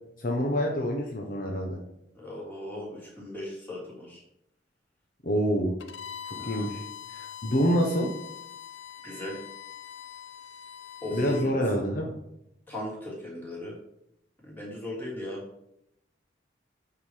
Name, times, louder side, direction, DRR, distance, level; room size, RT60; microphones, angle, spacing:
voice 1, 0.2-1.8 5.2-5.7 6.3-8.1 11.1-12.1, equal, 50° left, 0 dB, 1.0 m, -27 dB
voice 2, 2.1-4.2 6.4-6.7 9.0-9.4 11.0-11.6 12.7-13.8 14.4-15.4, left 1 dB, 10° left, -6 dB, 3.4 m, -37 dB
Bowed string instrument, 5.8-11.5, left 9 dB, 70° left, 0.6 m, -43 dB
9.0 x 4.9 x 5.0 m, 0.78 s
head